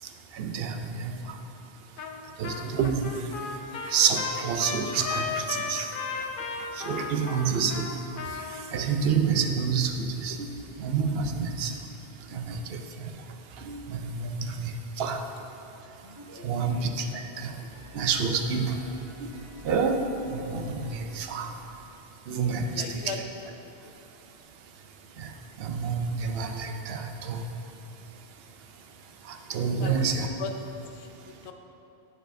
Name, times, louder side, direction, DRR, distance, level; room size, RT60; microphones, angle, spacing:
voice 1, 0.3-1.1 2.4-3.1 3.9-5.9 6.8-7.9 8.7-10.4 10.8-11.7 12.3-12.8 13.7-15.2 16.4-17.5 17.9-18.8 19.6-21.5 22.3-23.1 25.2-25.3 25.6-27.4 29.3-30.3, right 5 dB, 70° right, 5 dB, 0.8 m, -28 dB
Trumpet, 2.0-2.2 2.4-8.7, left 5 dB, 60° left, 0.7 m, -34 dB
sound 1, 16.0-16.4 16.7-21.6, left 1 dB, 30° right, 0.9 m, -50 dB
voice 2, 16.3-16.9 22.7-23.5 23.8-23.9 29.8-30.1 30.4-30.5 30.9-31.5, left 5 dB, 85° left, 4 dB, 0.9 m, -39 dB
10.0 x 6.4 x 2.6 m, 2.8 s
omnidirectional pair, 1.1 m